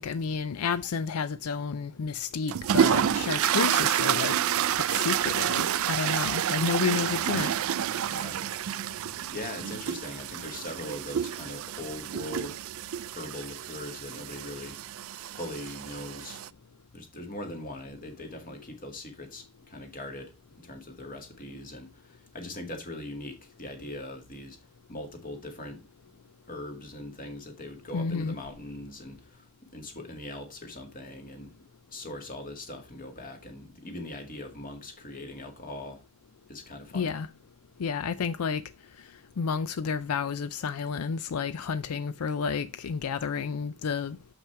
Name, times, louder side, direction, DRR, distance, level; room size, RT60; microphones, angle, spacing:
voice 1, 0.0-4.4 4.9-7.5 27.9-28.4 36.9-37.3 37.8-38.6 39.4-44.2, left 6 dB, 85° left, 0.4 m, -30 dB
sound 1, 2.5-16.5, right 9 dB, 70° right, 0.4 m, -29 dB
voice 2, 8.0-8.4 8.8-12.6 13.2-14.8 15.3-16.4 16.9-20.3 20.6-24.6 24.9-26.1 26.5-29.5 29.7-31.5 31.9-36.0 36.5-37.1, left 1 dB, 40° left, 2.0 m, -41 dB
7.2 x 5.8 x 4.6 m
head